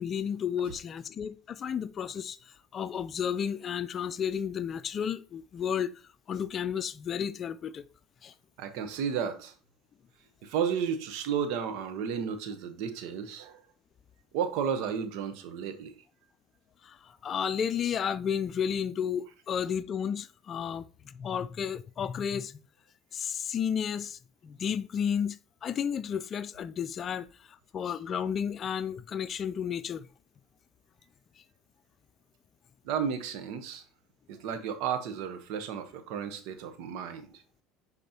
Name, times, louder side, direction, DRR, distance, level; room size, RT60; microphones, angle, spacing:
voice 1, 0.0-2.4 2.7-5.9 6.3-7.8 8.2-8.3 16.8-22.6 23.1-30.1, left 8 dB, 45° left, 0.4 m, -32 dB
voice 2, 8.6-9.5 10.4-13.6 14.3-15.9 32.8-33.8 34.3-37.3, right 7 dB, 70° right, 1.0 m, -33 dB
10.0 x 4.1 x 2.9 m
hypercardioid pair, 85°, 0 cm